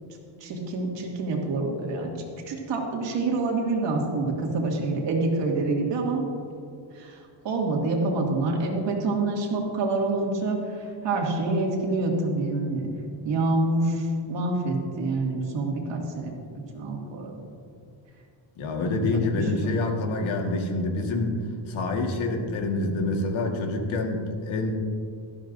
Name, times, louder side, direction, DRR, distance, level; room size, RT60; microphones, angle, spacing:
voice 1, 0.4-2.1 2.5-6.2 6.9-7.2 7.4-10.6 11.0-12.9 13.2-17.3 19.3-19.7, right 2 dB, 65° right, -1 dB, 2.3 m, -27 dB
voice 2, 18.6-21.4 21.7-24.7, left 2 dB, 90° left, 3 dB, 1.8 m, -27 dB
18.0 x 13.5 x 2.6 m, 2.5 s
cardioid pair, 180°, 47 cm